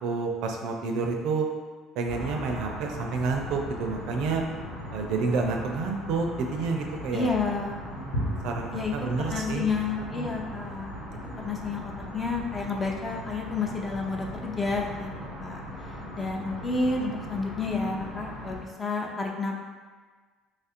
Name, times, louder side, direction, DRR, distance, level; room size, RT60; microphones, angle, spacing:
voice 1, 0.0-1.5 2.0-4.4 4.9-7.3 7.9-9.7 10.1-10.3, right 4 dB, 70° right, 2 dB, 0.5 m, -29 dB
sound 1, 2.1-18.6, equal, 80° left, 1.5 m, -38 dB
voice 2, 7.1-7.8 8.7-11.0 11.4-15.1 15.4-15.6 16.2-19.6, left 4 dB, 20° left, 0 dB, 0.5 m, -30 dB
3.1 x 2.5 x 4.3 m, 1.4 s
cardioid pair, 110°, 0 cm